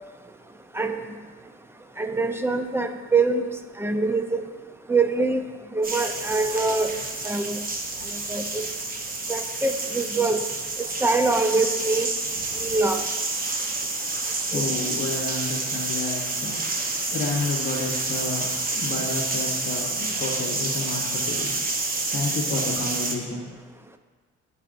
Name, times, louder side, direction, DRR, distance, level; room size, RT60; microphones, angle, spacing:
voice 1, 2.0-3.4 3.8-4.4 4.9-5.4 5.7-6.9 7.2-7.6 8.3-8.6 9.3-10.4 10.8-12.1 12.6-13.0 14.5-14.6, right 3 dB, 10° right, 7 dB, 0.5 m, -24 dB
sound 1, 5.8-23.1, right 3 dB, 30° right, 0.9 m, -29 dB
voice 2, 14.4-23.6, left 3 dB, 40° left, -3 dB, 1.0 m, -31 dB
11.0 x 4.1 x 2.6 m, 1.4 s
cardioid pair, 90°, 30 cm